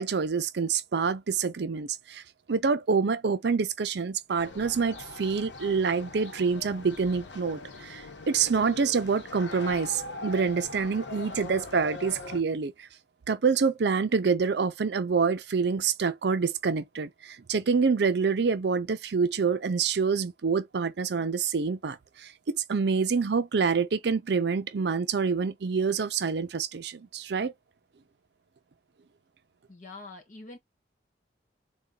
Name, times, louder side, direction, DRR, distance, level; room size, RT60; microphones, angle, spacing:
voice 1, 0.0-2.2 2.5-12.9 13.3-27.5, right 5 dB, 65° right, 0.5 m, -27 dB
sound 1, 4.4-12.4, left 3 dB, 85° left, 0.9 m, -41 dB
voice 2, 29.7-30.6, left 3 dB, 45° left, 1.5 m, -44 dB
3.8 x 2.3 x 3.7 m
head